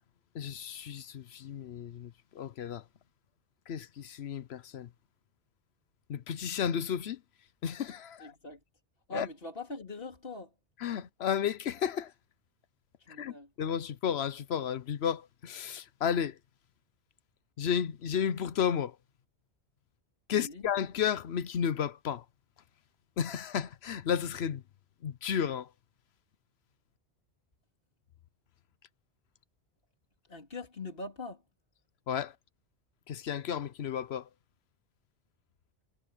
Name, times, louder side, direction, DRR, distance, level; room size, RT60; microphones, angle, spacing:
voice 1, 0.3-2.8 3.7-4.9 6.1-7.2 7.6-8.3 9.1-9.3 10.8-12.1 13.2-16.4 17.6-18.9 20.3-22.2 23.2-24.6 25.0-25.7 32.1-32.3 33.1-34.2, left 8 dB, 80° left, 1.0 m, -33 dB
voice 2, 8.2-8.6 9.1-10.5 13.0-13.5 20.3-20.6 30.3-31.4, left 2 dB, 60° left, 3.2 m, -42 dB
omnidirectional pair, 1.1 m